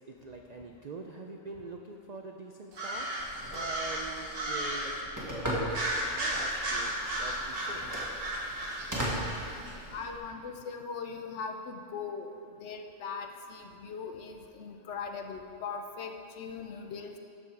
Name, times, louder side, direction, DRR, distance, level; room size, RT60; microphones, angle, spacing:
voice 1, 0.1-5.0 5.2-7.8, right 3 dB, 70° right, 3 dB, 0.4 m, -44 dB
sound 1, 2.7-5.0 5.7-9.7, right 1 dB, 45° right, 1.4 m, -34 dB
Telephone, 3.2-10.2, equal, 15° right, 1.6 m, -38 dB
voice 2, 9.5-12.3 12.6-17.1, left 5 dB, 65° left, 5 dB, 1.0 m, -40 dB
13.5 x 5.5 x 4.7 m, 2.5 s
omnidirectional pair, 1.4 m